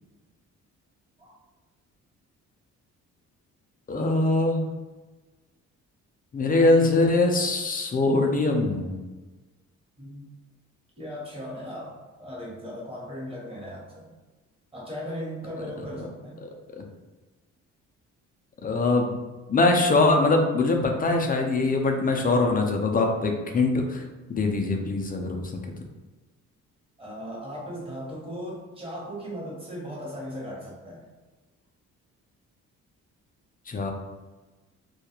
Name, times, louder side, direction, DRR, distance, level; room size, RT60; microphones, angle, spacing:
voice 1, 3.9-4.6 6.3-9.0 16.4-16.8 18.6-19.1 19.5-24.0 24.3-25.5 33.7-33.9, left 2 dB, 30° left, 3 dB, 0.4 m, -22 dB
voice 2, 10.0-10.3 11.0-14.1 14.7-16.5 27.0-31.0, equal, 20° right, -5 dB, 1.1 m, -37 dB
2.3 x 2.1 x 2.9 m, 1.2 s
cardioid pair, 90°, 30 cm